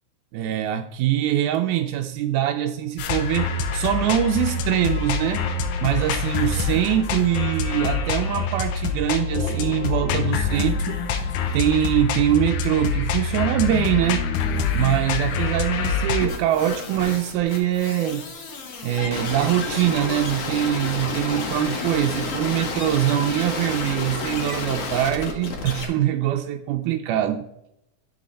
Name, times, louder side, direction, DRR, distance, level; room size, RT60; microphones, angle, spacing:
voice 1, 0.3-5.5 5.8-11.0 11.5-14.3 14.7-18.3 18.8-27.5, right 12 dB, 85° right, 2.0 m, -23 dB
sound 1, 3.0-16.3, left 5 dB, 80° left, 2.3 m, -25 dB
sound 2, 16.2-25.9, left 4 dB, 55° left, 2.2 m, -30 dB
sound 3, 20.9-21.8 22.2-24.5, right 1 dB, 65° right, 0.4 m, -42 dB
8.3 x 6.4 x 4.2 m
omnidirectional pair, 3.6 m